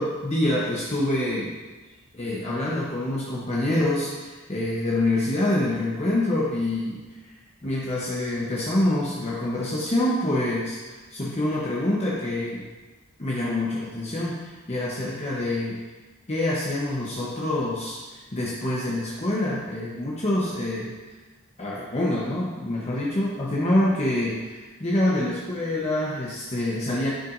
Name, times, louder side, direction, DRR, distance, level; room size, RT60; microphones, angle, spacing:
voice 1, 0.0-1.5 2.1-7.3 7.6-12.6 13.2-15.8 16.3-21.0 21.6-27.1, left 1 dB, 30° left, -6 dB, 0.9 m, -26 dB
10.0 x 5.9 x 2.6 m, 1.3 s
head